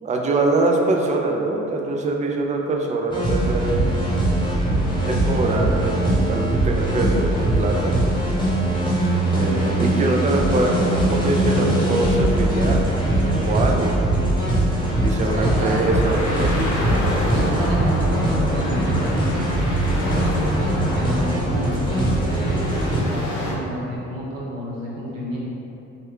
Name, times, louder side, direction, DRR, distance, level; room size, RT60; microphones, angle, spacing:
voice 1, 0.0-3.8 5.0-8.0 9.3-13.9 15.0-16.7, right 2 dB, 20° right, 1 dB, 0.3 m, -23 dB
sound 1, 3.1-23.0, right 1 dB, 10° left, 1.1 m, -21 dB
voice 2, 15.2-15.8 17.3-25.4, right 1 dB, 80° right, -5 dB, 0.7 m, -29 dB
sound 2, 15.4-23.5, left 1 dB, 70° left, 0.8 m, -29 dB
3.1 x 2.3 x 3.5 m, 2.7 s
figure-of-eight pair, 45°, 38 cm